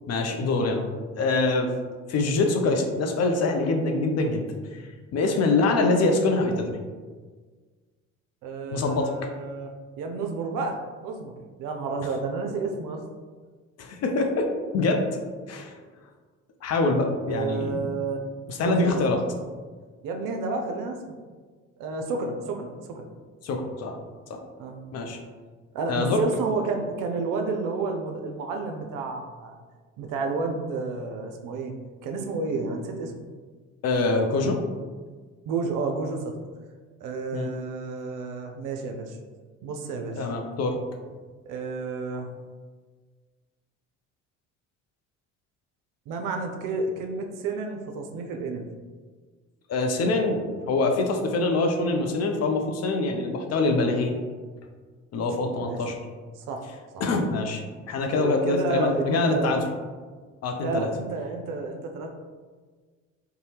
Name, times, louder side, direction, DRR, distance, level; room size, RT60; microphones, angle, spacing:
voice 1, 0.1-0.8 1.2-1.7 2.1-4.4 4.7-4.8 5.1-6.7 8.7-9.1 13.8-14.5 14.7-15.0 15.5-15.7 16.6-17.9 18.5-19.2 23.4-23.9 24.3-24.4 24.9-25.2 25.9-26.2 33.8-34.6 37.3-37.5 40.2-40.8 49.7-54.2 55.1-56.0 57.0-59.6 60.4-60.9, left 3 dB, 45° left, 3 dB, 0.5 m, -24 dB
voice 2, 8.4-11.3 11.6-13.0 17.3-18.2 18.6-19.0 20.0-21.2 21.8-23.1 24.6-24.8 25.7-29.6 30.0-31.7 32.0-33.1 35.5-36.3 37.0-39.2 39.6-40.2 41.5-42.3 46.1-48.6 55.6-55.8 56.4-56.6 56.9-57.0 58.2-59.5 60.6-62.1, right 4 dB, 60° right, 4 dB, 0.5 m, -31 dB
2.7 x 2.2 x 3.3 m, 1.5 s
hypercardioid pair, 60°, 37 cm